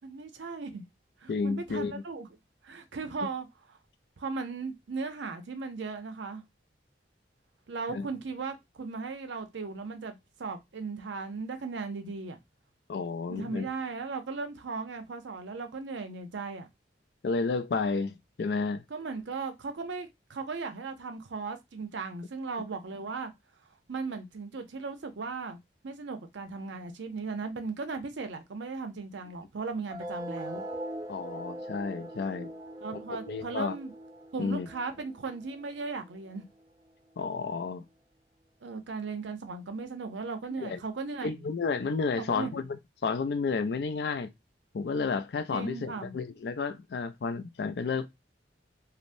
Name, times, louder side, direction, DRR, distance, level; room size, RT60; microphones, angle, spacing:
voice 1, 0.0-0.8 1.2-2.3 2.6-3.5 4.2-6.4 7.7-12.4 13.3-16.7 18.9-23.3 23.9-25.6 25.8-30.6 32.8-33.9 34.3-36.4 38.6-41.5 42.2-42.6 45.5-46.2, right 4 dB, 85° right, 0.6 m, -37 dB
voice 2, 1.3-2.0 7.9-8.1 12.9-13.7 17.2-18.8 31.1-32.5 33.1-33.8 34.4-34.7 37.2-37.8 40.6-40.8 41.2-44.3 44.7-48.1, left 4 dB, 60° left, 0.4 m, -31 dB
sound 1, 29.9-36.9, right 1 dB, 15° right, 0.3 m, -42 dB
3.3 x 2.0 x 2.5 m
head